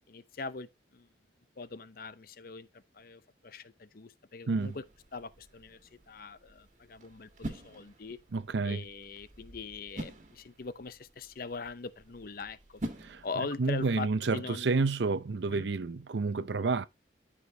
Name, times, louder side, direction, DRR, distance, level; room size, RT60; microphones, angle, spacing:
voice 1, 0.1-1.1 1.6-4.8 5.1-5.8 6.1-8.2 8.6-12.8 13.2-14.8 15.5-15.7, left 4 dB, 55° left, 0.6 m, -42 dB
sound 1, 4.6-13.9, right 1 dB, 40° right, 1.8 m, -46 dB
voice 2, 8.3-8.8 13.0-13.2 13.6-16.9, right 4 dB, 75° right, 0.6 m, -29 dB
13.5 x 5.1 x 2.7 m
head